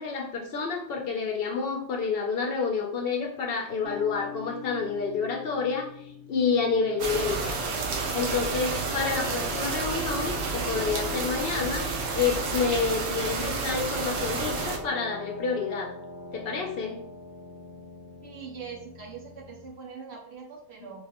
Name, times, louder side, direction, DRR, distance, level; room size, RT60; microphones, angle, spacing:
voice 1, 0.0-7.6 8.1-15.9 16.3-17.0, left 5 dB, 60° left, 2 dB, 0.7 m, -29 dB
sound 1, 3.8-19.7, left 3 dB, 90° left, 1.0 m, -43 dB
sound 2, 7.0-14.8, right 4 dB, 90° right, 1.0 m, -30 dB
voice 2, 18.2-21.0, right 6 dB, 65° right, -1 dB, 0.8 m, -42 dB
3.4 x 3.2 x 2.9 m, 0.64 s
omnidirectional pair, 1.3 m